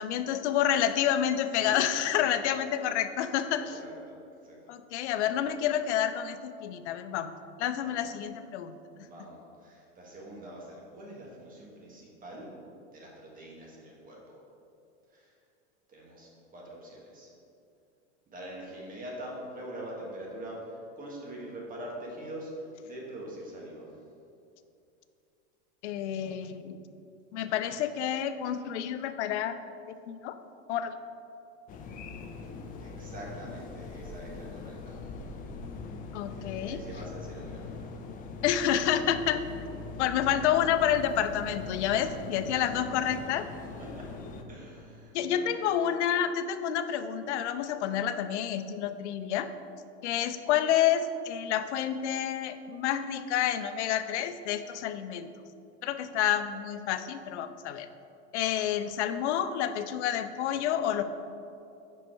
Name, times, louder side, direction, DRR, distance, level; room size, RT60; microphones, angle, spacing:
voice 1, 0.0-3.8 4.7-9.1 25.8-26.9 27.3-29.6 29.9-30.4 30.7-30.9 36.1-36.8 38.4-39.5 40.0-43.5 45.1-49.5 50.0-55.3 55.8-57.9 58.3-61.0, left 10 dB, 80° left, 11 dB, 0.5 m, -29 dB
voice 2, 3.5-4.2 4.4-4.6 7.8-8.0 9.0-12.5 12.9-14.4 15.1-15.3 15.9-17.3 18.3-23.9 32.8-35.0 36.3-37.9 41.9-42.2 42.6-42.8 43.8-44.1 44.5-45.6, right 1 dB, 25° right, -3 dB, 1.5 m, -44 dB
sound 1, 31.7-44.4, left 4 dB, 25° left, 0.4 m, -42 dB
5.6 x 5.3 x 4.5 m, 2.6 s
supercardioid pair, 130°, 34 cm